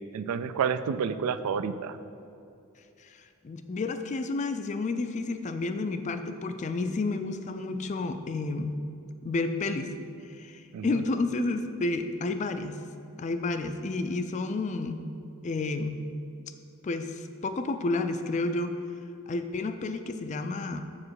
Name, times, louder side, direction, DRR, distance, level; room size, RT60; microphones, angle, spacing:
voice 1, 0.1-2.0 10.7-11.0, right 6 dB, 85° right, 13 dB, 0.3 m, -29 dB
voice 2, 3.0-8.8 9.2-9.9 10.2-12.8 13.2-15.1 15.4-16.0 16.8-18.8 19.3-20.8, left 3 dB, 30° left, 8 dB, 0.3 m, -31 dB
7.3 x 4.9 x 4.7 m, 2.7 s
head